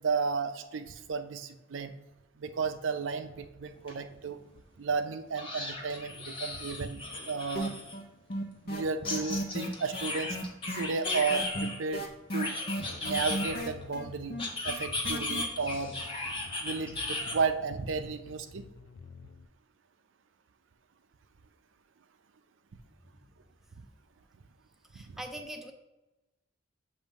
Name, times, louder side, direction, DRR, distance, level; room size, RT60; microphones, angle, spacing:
voice 1, 0.0-1.9 2.4-4.4 4.8-7.0 7.3-7.7 8.7-10.4 10.8-12.1 12.3-12.6 13.0-14.4 14.6-16.0 16.6-18.6, right 5 dB, 80° right, 8 dB, 0.5 m, -33 dB
sound 1, 3.9-4.0 4.3-4.4 5.4-8.0 9.1-11.8 12.3-13.8 14.4-17.4, left 2 dB, 30° left, 1.0 m, -36 dB
sound 2, 7.5-8.0 8.3-15.4, equal, 55° left, 0.8 m, -35 dB
sound 3, 13.1-19.5, left 5 dB, 80° left, 0.4 m, -51 dB
voice 2, 24.9-25.7, right 1 dB, ahead, 2 dB, 0.6 m, -42 dB
7.4 x 2.6 x 5.2 m, 1.0 s
head